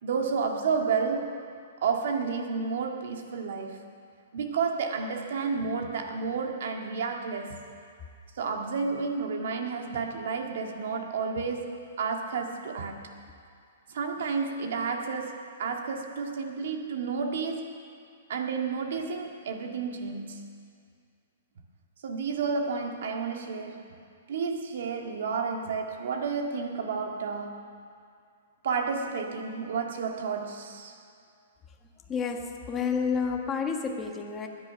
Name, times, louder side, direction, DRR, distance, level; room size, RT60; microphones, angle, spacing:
voice 1, 0.0-1.4 1.8-3.9 4.3-7.6 8.4-13.1 13.9-17.7 18.3-20.5 22.0-23.9 24.3-27.7 28.6-31.0, right 5 dB, 65° right, 3 dB, 1.9 m, -31 dB
voice 2, 31.8-34.5, left 6 dB, 15° left, 3 dB, 1.3 m, -30 dB
21.0 x 10.5 x 5.8 m, 2.3 s
hypercardioid pair, 155°, 0 cm